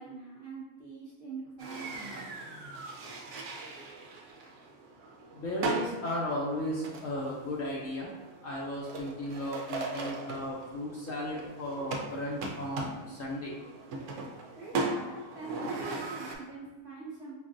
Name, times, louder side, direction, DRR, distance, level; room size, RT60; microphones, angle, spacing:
voice 1, 0.0-2.2 14.5-17.3, right 3 dB, 40° right, -8 dB, 1.0 m, -43 dB
sound 1, 1.6-16.3, right 3 dB, 70° right, 0.7 m, -39 dB
voice 2, 5.3-8.1 8.4-13.6, left 1 dB, 65° left, -4 dB, 0.9 m, -35 dB
5.1 x 2.4 x 2.5 m, 1.2 s
omnidirectional pair, 1.8 m